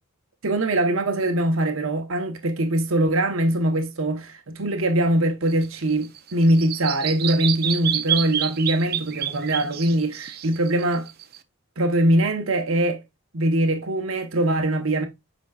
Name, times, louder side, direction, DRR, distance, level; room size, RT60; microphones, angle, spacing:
voice 1, 0.4-11.1 11.8-13.0 13.3-15.1, right 1 dB, 70° right, 1.0 m, -22 dB
Bird vocalization bird call bird song, 5.5-11.4, right 10 dB, 45° right, 0.6 m, -29 dB
8.0 x 5.2 x 2.4 m
head